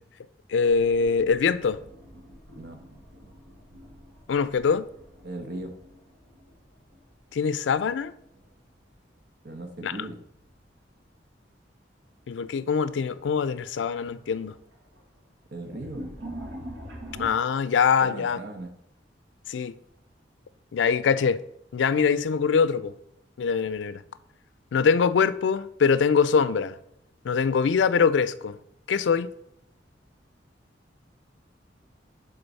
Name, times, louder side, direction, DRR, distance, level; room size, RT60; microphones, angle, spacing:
voice 1, 0.5-1.8 4.3-4.9 7.3-8.1 9.8-9.9 12.3-14.5 17.2-18.4 19.5-19.7 20.7-21.4 21.7-22.9 23.4-24.0 24.7-26.7 27.2-28.6 28.9-29.3, left 6 dB, 90° left, 0.4 m, -23 dB
sound 1, 0.6-7.5 7.7-8.6 10.3-10.6 11.2-11.3 12.3-12.4 12.7-13.2 13.6-17.3, equal, 85° right, 1.8 m, -45 dB
voice 2, 5.2-5.8 9.4-10.2 15.5-16.1 18.0-18.7, right 1 dB, 65° right, 1.0 m, -38 dB
6.9 x 3.8 x 4.0 m
head